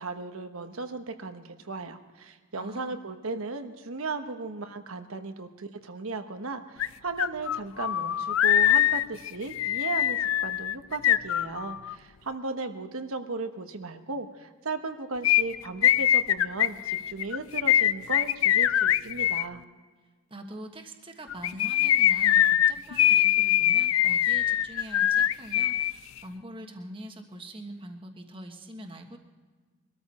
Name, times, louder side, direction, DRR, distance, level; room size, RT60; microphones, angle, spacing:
voice 1, 0.0-19.6, right 3 dB, 90° right, 7 dB, 1.1 m, -36 dB
voice 2, 2.5-3.1 20.3-29.2, right 1 dB, 25° right, 4 dB, 1.3 m, -43 dB
sound 1, 6.8-6.9 7.2-11.9 15.2-19.5 21.3-25.9 26.2-26.3, left 11 dB, 75° left, 0.3 m, -23 dB
23.0 x 13.5 x 4.2 m, 1.4 s
head